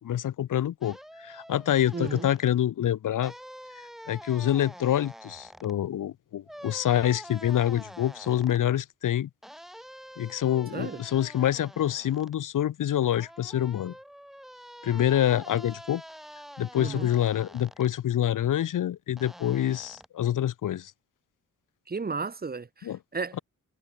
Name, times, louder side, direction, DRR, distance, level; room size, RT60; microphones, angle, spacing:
voice 1, 0.0-3.3 4.1-9.3 10.2-13.9 14.8-16.0 16.6-20.9 22.8-23.0, left 11 dB, 80° left, 1.6 m, -26 dB
sound 1, 0.8-2.5 3.2-5.7 6.5-8.6 9.4-12.4 13.0-17.9 19.2-20.1, equal, ahead, 2.7 m, -47 dB
voice 2, 1.9-2.3 10.7-11.0 16.8-17.1 21.9-23.4, right 4 dB, 30° right, 5.4 m, -34 dB
wide cardioid pair, 145°, 31 cm